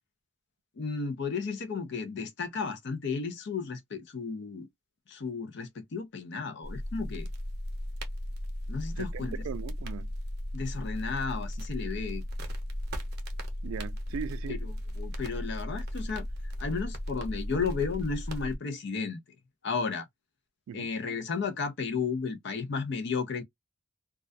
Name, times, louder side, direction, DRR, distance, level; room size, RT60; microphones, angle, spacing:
voice 1, 0.8-4.7 5.1-7.3 8.7-9.4 10.5-12.2 14.5-14.6 15.0-16.3 16.6-19.2 19.6-20.1 20.7-23.4, left 5 dB, 55° left, 0.5 m, -33 dB
sound 1, 6.6-18.6, equal, 50° right, 0.7 m, -36 dB
voice 2, 9.0-10.1 13.6-14.7 20.7-20.9, right 7 dB, 80° right, 0.3 m, -39 dB
2.2 x 2.2 x 2.4 m
head